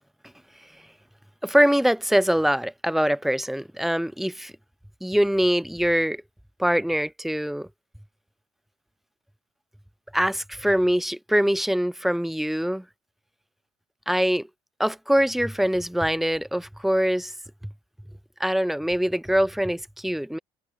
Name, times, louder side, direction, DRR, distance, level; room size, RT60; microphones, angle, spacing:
voice 1, 1.4-4.5 5.0-6.2 6.6-7.7 10.1-12.8 14.1-14.5 14.8-17.3 18.4-20.4, equal, ahead, 0.7 m, -23 dB
hypercardioid pair, 60°, 15 cm